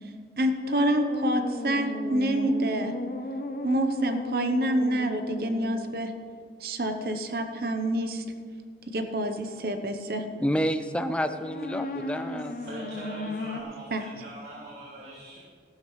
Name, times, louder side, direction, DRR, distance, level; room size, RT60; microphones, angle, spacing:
voice 1, 0.4-2.9 3.6-6.1 6.6-8.2 8.9-10.3 13.9-14.0, right 1 dB, 55° right, 7 dB, 0.8 m, -27 dB
sound 1, 0.6-6.1 11.3-13.6, left 1 dB, 50° left, 0.8 m, -35 dB
voice 2, 10.4-12.6, equal, 5° left, 9 dB, 0.4 m, -29 dB
voice 3, 12.6-15.4, right 1 dB, 75° right, -9 dB, 3.4 m, -42 dB
14.5 x 12.5 x 3.2 m, 2.1 s
head